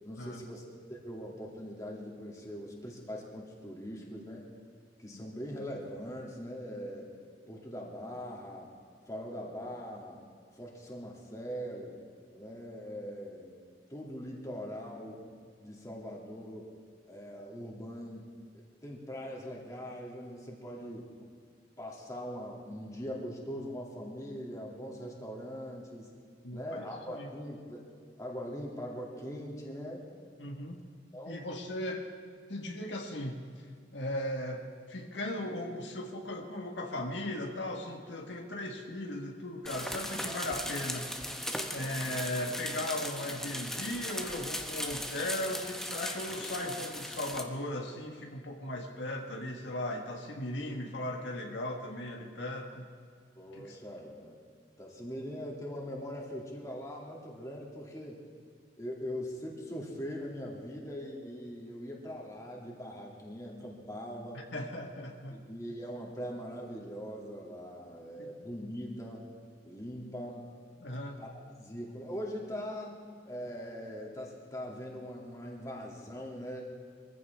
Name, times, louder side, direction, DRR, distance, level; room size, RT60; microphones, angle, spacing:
voice 1, 0.0-4.5 5.0-7.1 7.5-8.7 9.1-10.2 10.6-12.0 12.3-13.5 13.9-15.2 15.6-16.7 17.1-18.2 18.5-21.1 21.8-26.1 26.5-27.9 28.2-30.0 31.1-31.5 53.4-54.4 54.8-58.2 58.8-64.4 65.3-69.3 69.6-70.5 71.2-71.3 71.6-72.9 73.2-76.6, equal, 20° left, -2 dB, 2.5 m, -41 dB
voice 2, 26.4-27.3 30.4-30.8 31.3-32.1 32.5-33.4 33.9-41.1 41.7-52.9 53.5-53.8 64.3-65.4 68.2-68.3 70.8-71.2, left 1 dB, 85° left, 2 dB, 1.6 m, -37 dB
sound 1, 39.7-47.4, left 1 dB, 5° left, 0.9 m, -38 dB
23.0 x 15.0 x 3.6 m, 2.2 s
head